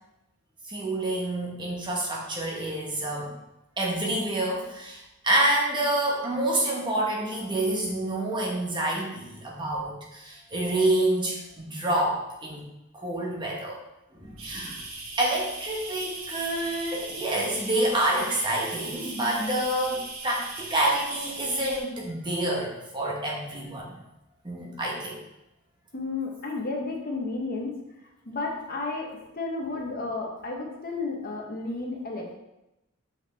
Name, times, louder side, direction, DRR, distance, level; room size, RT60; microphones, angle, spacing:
voice 1, 0.7-3.3 3.8-12.7 12.9-13.8 14.1-14.8 15.2-24.0 24.4-25.2, right 1 dB, 20° right, -3 dB, 1.3 m, -28 dB
sound 1, 14.4-21.8, right 3 dB, 80° right, 1.3 m, -39 dB
voice 2, 25.9-27.8 28.2-32.3, left 3 dB, 45° left, 0 dB, 1.0 m, -32 dB
6.1 x 5.5 x 3.4 m, 0.91 s
head